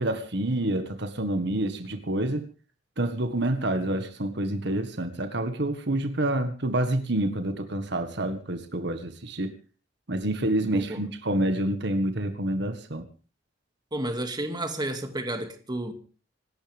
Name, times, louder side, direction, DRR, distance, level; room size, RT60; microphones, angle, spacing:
voice 1, 0.0-2.5 3.0-9.6 10.1-13.1, right 1 dB, 65° right, 1.7 m, -28 dB
voice 2, 10.7-11.0 13.9-15.9, right 1 dB, 25° right, 2.4 m, -31 dB
26.5 x 12.5 x 3.6 m
head